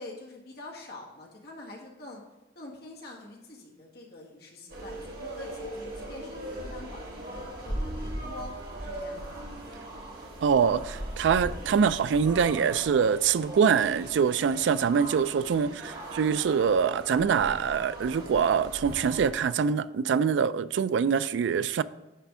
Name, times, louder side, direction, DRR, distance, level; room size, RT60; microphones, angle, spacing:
voice 1, 0.0-2.2 2.5-8.5 8.8-9.5 15.8-16.2, left 2 dB, 55° left, 1.5 m, -45 dB
sound 1, 4.7-19.3, right 1 dB, 55° right, 1.5 m, -39 dB
voice 2, 10.4-21.8, right 6 dB, 70° right, 0.3 m, -24 dB
9.9 x 3.4 x 6.0 m
head